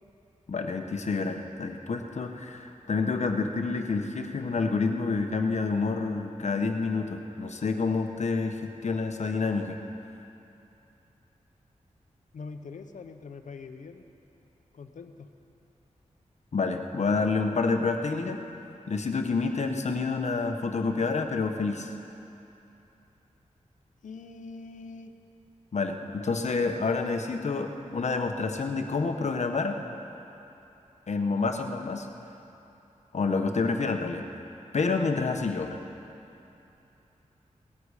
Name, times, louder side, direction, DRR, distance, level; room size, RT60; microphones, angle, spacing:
voice 1, 0.5-9.8 16.5-18.4 18.9-22.0 25.7-29.8 31.1-32.1 33.1-34.2 34.7-35.8, left 4 dB, 60° left, 5 dB, 1.1 m, -28 dB
voice 2, 12.3-14.0 14.7-15.3 24.0-25.1, left 4 dB, 80° left, 7 dB, 0.9 m, -43 dB
18.0 x 13.5 x 5.0 m, 2.9 s
wide cardioid pair, 75°, 13 cm